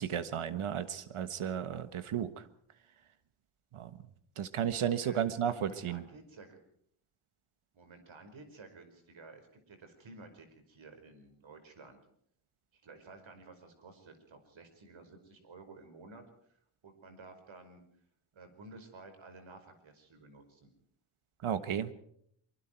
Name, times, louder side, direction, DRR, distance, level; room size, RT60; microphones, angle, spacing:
voice 1, 0.0-2.4 3.7-3.9 4.4-6.0 21.4-21.9, right 9 dB, 85° right, 12 dB, 1.5 m, -33 dB
voice 2, 5.0-6.6 7.7-12.0 12.7-17.8 18.3-20.7, right 3 dB, 70° right, 7 dB, 5.2 m, -53 dB
24.5 x 24.0 x 4.6 m, 0.68 s
wide cardioid pair, 125°, 49 cm